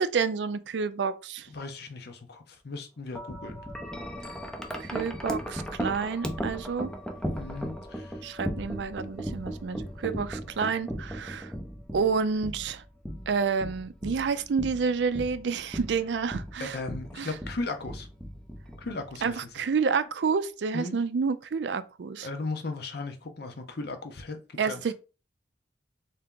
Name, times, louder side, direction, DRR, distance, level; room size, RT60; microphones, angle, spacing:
voice 1, 0.0-1.5 4.8-6.9 8.2-11.5 11.9-12.8 13.3-16.8 17.2-17.3 19.2-22.3 24.6-24.9, right 5 dB, 70° right, 0.4 m, -29 dB
voice 2, 1.5-3.6 7.3-8.2 16.6-18.1 18.8-19.4 20.7-21.0 22.2-24.8, left 3 dB, 60° left, 0.7 m, -36 dB
Wind chime, 3.2-19.3, equal, 5° left, 0.5 m, -37 dB
3.5 x 2.8 x 3.7 m
head